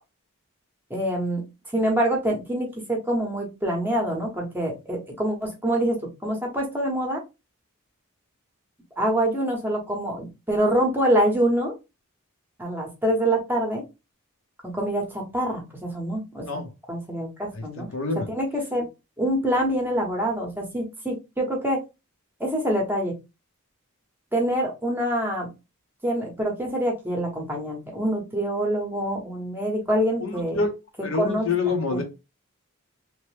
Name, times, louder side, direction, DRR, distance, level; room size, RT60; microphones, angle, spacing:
voice 1, 0.9-1.4 1.7-7.2 9.0-11.7 12.6-13.8 14.6-16.6 16.9-17.9 18.3-18.9 19.2-21.8 22.4-23.2 24.3-25.5 26.0-30.6 31.2-31.5 31.9-32.0, right 1 dB, 10° right, -1 dB, 0.8 m, -25 dB
voice 2, 17.5-18.2 30.2-30.7 31.0-32.0, left 4 dB, 65° left, 4 dB, 0.8 m, -27 dB
3.0 x 2.1 x 3.2 m, 0.25 s
head